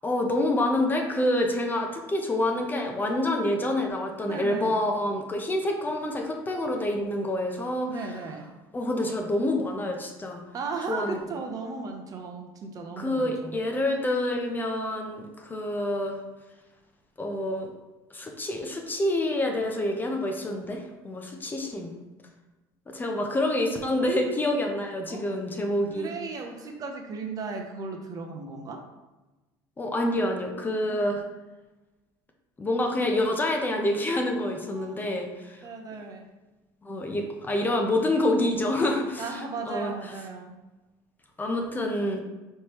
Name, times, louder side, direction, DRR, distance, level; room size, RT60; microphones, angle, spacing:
voice 1, 0.0-7.9 8.7-10.4 10.9-11.2 13.0-16.2 17.2-17.7 18.1-21.9 22.9-26.1 29.8-31.2 32.6-35.6 36.8-39.9 41.4-42.2, left 1 dB, 20° left, 2 dB, 0.7 m, -27 dB
voice 2, 4.2-4.8 7.9-8.5 10.5-13.6 25.1-25.2 25.6-28.8 30.9-31.0 34.7-35.2 35.6-36.3 39.2-40.5, right 4 dB, 40° right, 3 dB, 0.7 m, -36 dB
4.5 x 3.2 x 3.0 m, 1.1 s
supercardioid pair, 100°, 9 cm